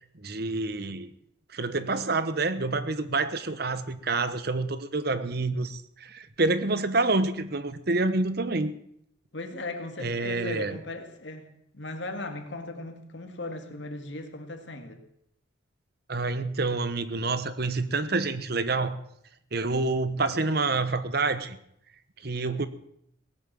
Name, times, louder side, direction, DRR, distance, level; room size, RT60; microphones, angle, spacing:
voice 1, 0.1-1.1 1.5-8.7 10.0-10.8 16.1-19.0 19.5-21.6 22.2-22.7, right 3 dB, 55° right, 1.0 m, -28 dB
voice 2, 9.3-15.1, left 2 dB, 65° left, 2.0 m, -37 dB
17.5 x 8.7 x 7.5 m
head